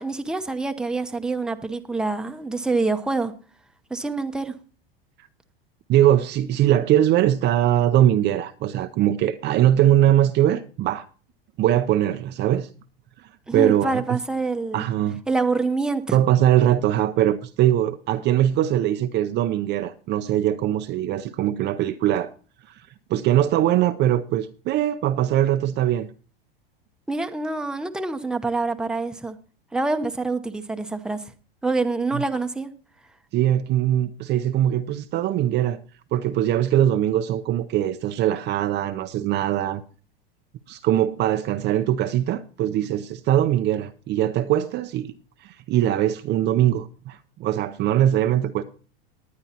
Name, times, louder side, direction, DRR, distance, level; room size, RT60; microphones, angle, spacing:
voice 1, 0.0-3.3 3.9-4.5 13.5-14.9 15.3-16.2 27.1-29.4 29.7-31.2 31.6-32.7, right 3 dB, 5° right, 0.8 m, -26 dB
voice 2, 5.9-11.0 11.6-12.7 13.5-14.2 14.7-15.2 16.1-22.3 23.1-26.1 32.1-32.2 33.3-35.8 36.1-39.8 40.7-45.1 45.4-48.6, right 12 dB, 35° right, 0.6 m, -21 dB
19.0 x 9.7 x 2.8 m
hypercardioid pair, 110°, 29 cm